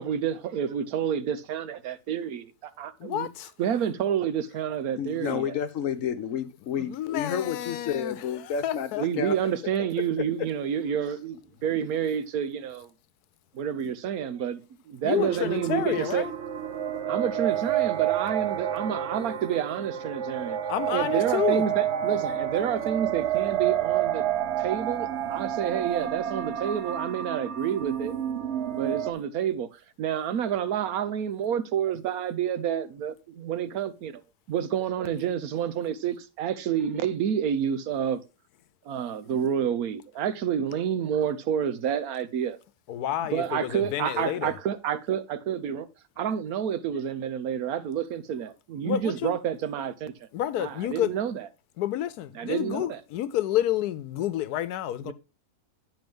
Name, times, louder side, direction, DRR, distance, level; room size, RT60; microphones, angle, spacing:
voice 1, 0.0-3.3 3.6-5.5 9.0-12.9 13.5-14.6 14.9-16.2 17.1-20.6 20.9-24.2 24.6-28.2 28.7-29.7 30.0-34.2 34.5-38.2 38.9-42.6 43.2-45.9 46.2-50.1 50.6-51.5 52.3-53.0 55.1-55.2, right 9 dB, 75° right, 1.2 m, -29 dB
voice 2, 3.0-3.5 6.8-9.1 15.0-16.3 20.7-21.7 42.9-44.6 48.8-49.4 50.3-51.1 51.8-55.1, left 12 dB, 80° left, 1.1 m, -29 dB
voice 3, 4.9-9.5 10.0-10.5, left 8 dB, 65° left, 1.0 m, -31 dB
sound 1, 15.2-29.1, right 11 dB, 55° right, 0.9 m, -29 dB
9.1 x 5.3 x 3.4 m
omnidirectional pair, 1.6 m